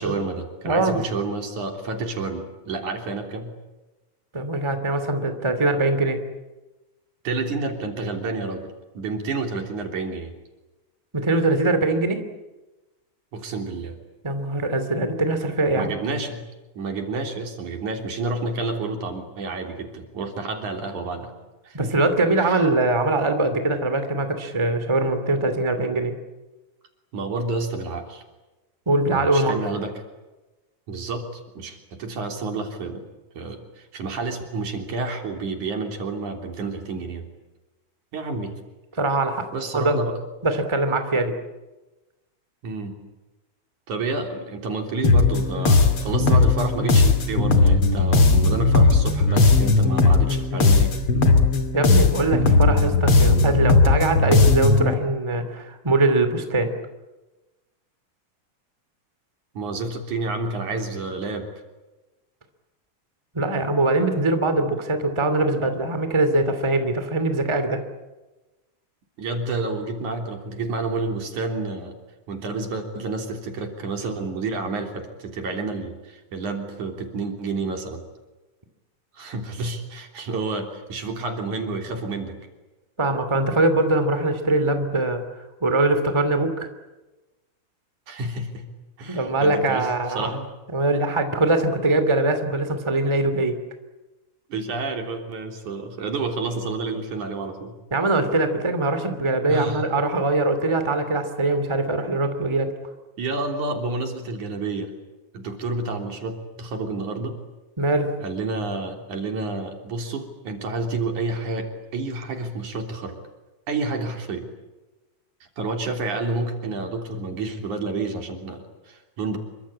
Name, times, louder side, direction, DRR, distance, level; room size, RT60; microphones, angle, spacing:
voice 1, 0.0-3.5 7.2-10.3 13.3-14.0 15.7-16.4 16.8-21.3 21.6-21.9 22.4-22.7 27.1-28.2 29.1-29.9 30.9-31.3 31.5-33.1 33.4-37.3 38.1-38.5 39.5-40.2 42.6-42.9 43.9-50.9 59.5-61.5 69.2-72.0 72.3-78.0 79.1-82.4 88.1-88.7 89.0-90.4 94.5-97.7 99.5-99.8 103.2-104.9 105.3-107.3 108.2-113.2 113.7-114.5 115.6-119.4, right 3 dB, 70° right, 4 dB, 4.7 m, -29 dB
voice 2, 0.6-1.0 4.3-6.2 11.1-12.2 14.2-15.9 21.7-26.1 28.9-29.6 39.0-39.5 39.7-40.0 40.4-41.4 51.7-56.7 63.3-67.8 83.0-85.2 85.6-86.7 89.1-90.4 90.7-93.6 97.9-102.7 107.8-108.1, right 2 dB, 10° right, 8 dB, 2.4 m, -22 dB
sound 1, 45.0-54.9, left 3 dB, 45° left, 3.3 m, -17 dB
27.5 x 25.0 x 8.7 m, 1.1 s
omnidirectional pair, 3.5 m